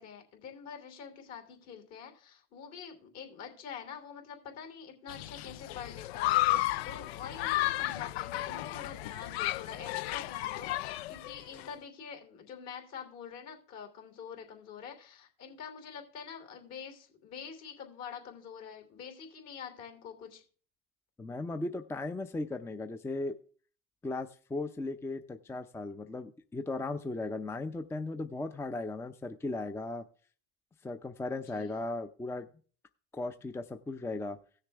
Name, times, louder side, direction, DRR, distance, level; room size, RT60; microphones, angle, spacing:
voice 1, 0.0-20.4 31.3-31.8, left 7 dB, 55° left, 4 dB, 3.0 m, -46 dB
Human group actions, 5.1-11.7, left 16 dB, 80° left, 0.5 m, -33 dB
voice 2, 21.2-23.3 24.0-30.0 30.8-32.5 33.1-34.4, left 2 dB, 10° left, 9 dB, 0.5 m, -37 dB
16.5 x 6.6 x 3.5 m, 0.42 s
supercardioid pair, 100°, 31 cm